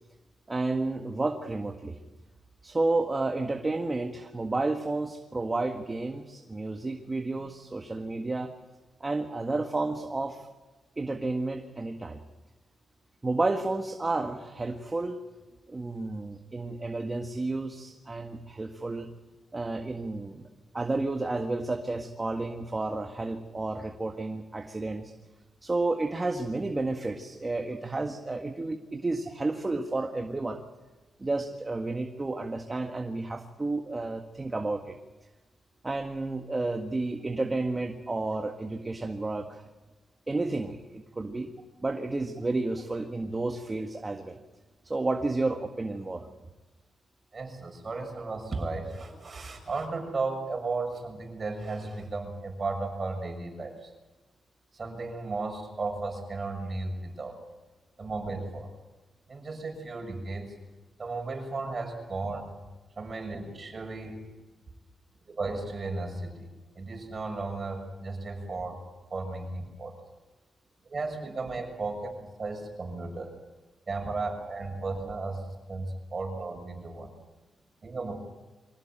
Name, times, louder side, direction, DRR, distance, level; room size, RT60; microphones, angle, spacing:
voice 1, 0.5-2.0 2.6-8.5 9.0-10.5 11.0-12.2 13.2-15.2 15.7-19.1 19.5-20.5 20.7-25.1 25.6-30.6 31.2-35.0 35.8-39.6 40.3-41.5 41.8-44.4 44.8-46.3, right 2 dB, 25° right, 4 dB, 1.7 m, -31 dB
voice 2, 47.3-53.7 54.7-57.4 58.0-58.7 59.3-60.5 61.0-62.5 63.0-64.2 65.3-66.5 66.7-68.8 69.1-69.9 70.9-73.3 73.9-75.4 75.7-77.1 77.8-78.1, right 3 dB, 40° right, 3 dB, 6.5 m, -34 dB
24.5 x 17.0 x 9.0 m, 1.2 s
cardioid pair, 100°, 0 cm